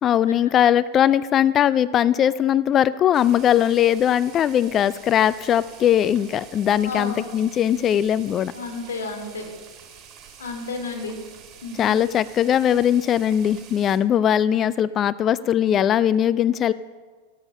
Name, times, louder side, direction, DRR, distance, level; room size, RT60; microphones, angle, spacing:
voice 1, 0.0-8.5 11.8-16.7, left 10 dB, 30° left, 17 dB, 0.3 m, -20 dB
sound 1, 3.1-14.0, right 7 dB, 30° right, 2.9 m, -46 dB
voice 2, 6.8-7.3 8.5-9.5 10.4-11.1 11.6-11.9, left 3 dB, 65° left, 3 dB, 2.8 m, -31 dB
13.5 x 13.0 x 5.6 m, 1.4 s
figure-of-eight pair, 90°, 0 cm